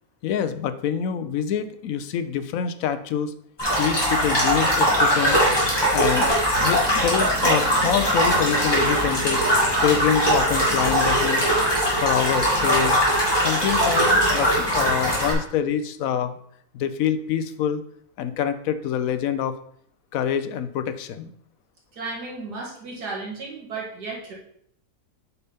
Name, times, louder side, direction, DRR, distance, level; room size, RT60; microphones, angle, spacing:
voice 1, 0.2-3.3 3.8-5.4 5.9-6.3 6.6-9.4 9.8-11.5 12.0-13.0 13.4-16.3 16.7-17.8 18.2-19.5 20.1-21.3, left 8 dB, 70° left, 11 dB, 0.9 m, -26 dB
sound 1, 3.6-15.3, equal, 15° left, 2.4 m, -21 dB
sound 2, 5.8-11.7, right 1 dB, 45° right, 2.3 m, -42 dB
voice 2, 21.9-24.3, right 3 dB, 85° right, -3 dB, 2.3 m, -34 dB
8.4 x 5.5 x 3.5 m, 0.67 s
omnidirectional pair, 1.7 m